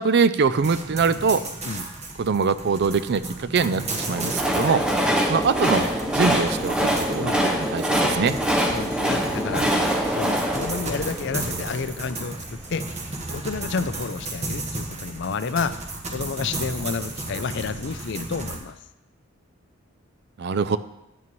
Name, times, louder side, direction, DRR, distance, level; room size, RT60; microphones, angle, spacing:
voice 1, 0.0-1.4 2.2-4.8 5.2-8.3 20.4-20.8, right 5 dB, 50° right, 13 dB, 0.4 m, -23 dB
sound 1, 0.6-18.6, right 2 dB, 30° right, 1.2 m, -34 dB
Train, 3.8-12.0, equal, 5° right, 0.8 m, -24 dB
voice 2, 8.7-9.7 10.1-12.9 13.3-15.8 16.1-18.8, left 5 dB, 55° left, 13 dB, 0.4 m, -30 dB
10.5 x 8.5 x 3.1 m, 0.88 s
head